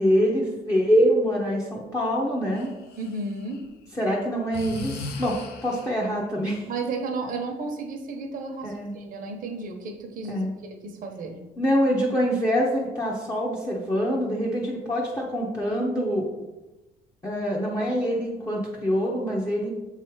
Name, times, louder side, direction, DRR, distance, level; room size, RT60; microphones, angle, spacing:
voice 1, 0.0-2.7 4.0-6.7 8.6-8.9 10.3-10.5 11.6-16.3 17.2-19.7, equal, 20° left, -4 dB, 1.1 m, -25 dB
Breathing, 2.5-3.7 4.5-6.1, left 3 dB, 70° left, 0.9 m, -37 dB
voice 2, 3.0-3.6 6.7-11.4, right 3 dB, 55° right, 3 dB, 1.0 m, -33 dB
6.8 x 3.4 x 4.7 m, 1.1 s
cardioid pair, 110°, 17 cm